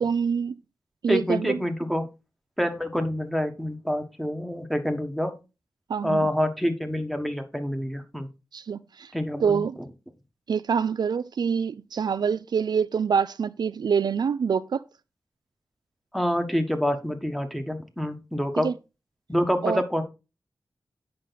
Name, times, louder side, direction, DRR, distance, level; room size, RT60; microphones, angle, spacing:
voice 1, 0.0-0.6 1.0-1.6 5.9-6.3 8.5-9.1 9.4-9.8 10.5-14.8 18.6-18.7 19.6-19.8, right 6 dB, 75° right, 0.4 m, -25 dB
voice 2, 1.1-2.1 2.6-5.3 6.0-8.3 9.1-9.6 16.1-18.7 19.3-20.0, equal, ahead, 1.4 m, -27 dB
8.9 x 5.4 x 4.0 m
wide cardioid pair, 90°, 7 cm